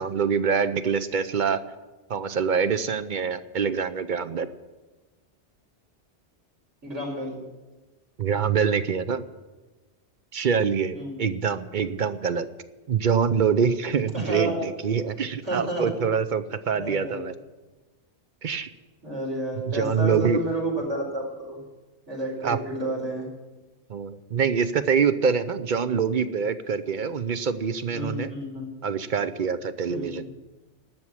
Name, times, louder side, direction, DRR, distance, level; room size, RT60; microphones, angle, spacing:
voice 1, 0.0-1.6 2.1-4.5 8.2-9.2 10.3-12.5 12.9-17.3 18.4-18.7 19.7-20.4 22.4-22.6 23.9-28.3 28.8-30.2, right 6 dB, 50° right, 12 dB, 0.7 m, -25 dB
voice 2, 6.8-7.4 10.9-11.1 14.1-14.7 15.4-15.9 16.7-17.2 19.0-21.6 22.1-23.3 27.9-28.7 29.9-30.2, right 1 dB, 90° right, -4 dB, 5.5 m, -30 dB
12.5 x 7.2 x 9.8 m, 1.2 s
omnidirectional pair, 1.2 m